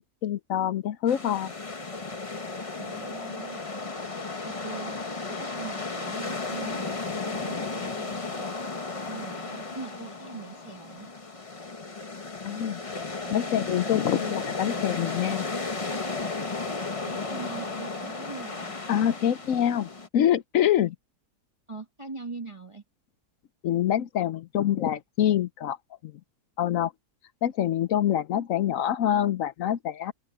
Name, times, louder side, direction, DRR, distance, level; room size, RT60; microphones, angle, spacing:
voice 1, 0.0-1.5 7.2-7.4 12.4-12.8 13.3-15.5 18.9-21.0 23.6-25.8 26.0-26.1 26.6-26.9 27.4-30.1, left 10 dB, 65° left, 1.0 m, -26 dB
sound 1, 1.1-20.1, left 3 dB, 25° left, 1.1 m, -34 dB
voice 2, 2.8-3.6 4.4-4.9 5.3-8.5 9.1-11.1 13.2-13.3 13.8-14.1 17.1-18.7 21.7-22.8, right 4 dB, 20° right, 1.2 m, -42 dB
open air
omnidirectional pair, 1.7 m